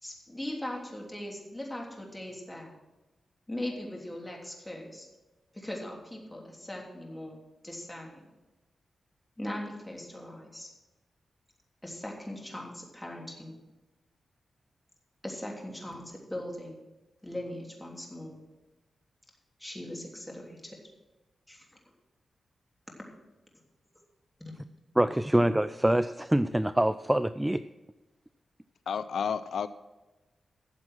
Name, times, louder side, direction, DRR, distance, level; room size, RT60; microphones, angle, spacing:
voice 1, 0.0-2.7 3.5-5.1 5.5-7.4 7.6-8.2 9.4-10.7 11.8-13.5 15.2-16.8 17.2-18.4 19.6-20.8 21.5-21.7 24.4-24.5, left 1 dB, 10° left, -1 dB, 3.2 m, -39 dB
voice 2, 25.0-27.6, right 1 dB, 10° right, 13 dB, 0.3 m, -25 dB
voice 3, 28.9-29.7, left 7 dB, 80° left, 14 dB, 0.4 m, -31 dB
13.5 x 7.5 x 6.2 m, 1.1 s
cardioid pair, 85°, 0 cm